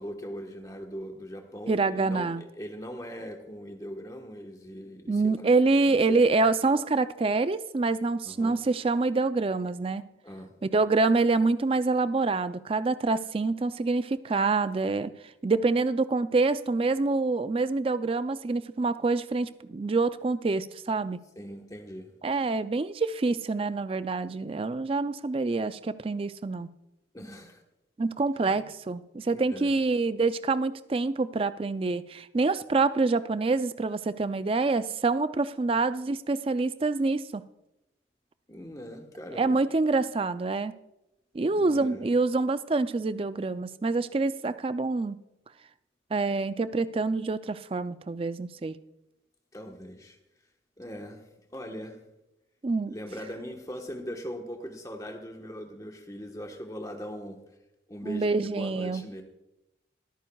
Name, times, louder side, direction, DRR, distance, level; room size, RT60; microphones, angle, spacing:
voice 1, 0.0-5.4 5.8-6.2 8.2-8.6 10.2-10.6 21.4-22.1 27.1-27.6 28.4-28.6 29.2-29.7 38.5-39.6 41.5-42.0 49.5-50.2 50.8-52.0 52.9-57.4 57.9-59.2, equal, 20° left, 3 dB, 1.2 m, -40 dB
voice 2, 1.7-2.4 5.1-10.0 10.6-21.2 22.2-26.7 28.0-37.4 39.4-40.7 41.3-45.2 46.1-48.8 52.6-52.9 58.0-59.0, right 3 dB, 30° right, 13 dB, 0.3 m, -26 dB
22.5 x 9.1 x 2.3 m, 0.92 s
head